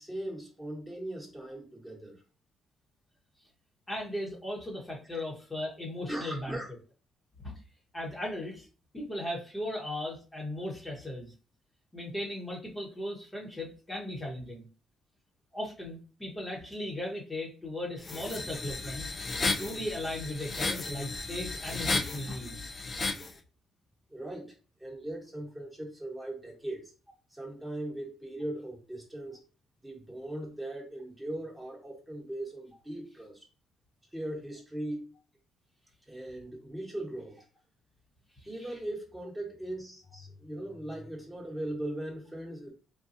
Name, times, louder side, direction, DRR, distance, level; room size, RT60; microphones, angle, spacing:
voice 1, 0.0-2.2 5.1-5.2 6.1-6.7 24.1-24.5 24.8-26.9 27.3-29.4 29.8-33.4 34.1-35.1 36.1-37.4 38.4-42.7, right 1 dB, 10° right, -2 dB, 1.3 m, -39 dB
voice 2, 3.9-6.6 7.4-7.5 7.9-8.7 8.9-11.3 11.9-14.7 15.5-19.1 19.4-22.7 38.4-38.8, left 1 dB, 15° left, -3 dB, 1.1 m, -37 dB
sound 1, 18.0-23.3, left 3 dB, 35° left, 0.5 m, -34 dB
3.9 x 2.3 x 2.6 m, 0.35 s
cardioid pair, 90°, 0 cm